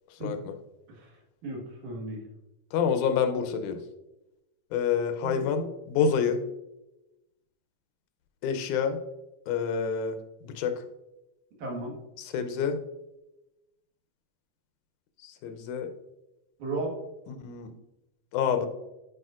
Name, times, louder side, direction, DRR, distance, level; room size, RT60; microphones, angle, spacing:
voice 1, 0.2-0.5 2.7-3.8 4.7-6.4 8.4-9.0 9.5-10.2 10.4-10.7 12.2-12.8 15.2-15.9 17.3-17.7 18.3-18.7, left 6 dB, 85° left, 8 dB, 2.2 m, -27 dB
voice 2, 1.4-2.2 5.2-5.5 11.6-12.0 16.6-17.0, right 2 dB, 80° right, -1 dB, 3.0 m, -34 dB
10.5 x 4.9 x 2.4 m, 0.95 s
omnidirectional pair, 3.4 m